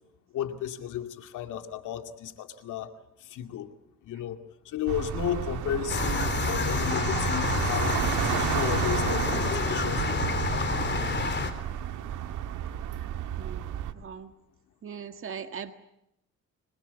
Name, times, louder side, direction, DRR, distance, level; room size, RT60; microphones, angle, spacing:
voice 1, 0.3-2.9 3.2-3.7 4.0-4.4 4.7-11.2, left 10 dB, 85° left, 6 dB, 2.4 m, -34 dB
sound 1, 4.9-13.9, right 11 dB, 85° right, 1.9 m, -32 dB
sound 2, 5.9-11.5, left 4 dB, 35° left, 3.5 m, -28 dB
voice 2, 13.4-14.3 14.8-15.7, right 7 dB, 45° right, 7 dB, 1.7 m, -40 dB
26.5 x 22.0 x 8.2 m, 0.83 s
cardioid pair, 90°, 30 cm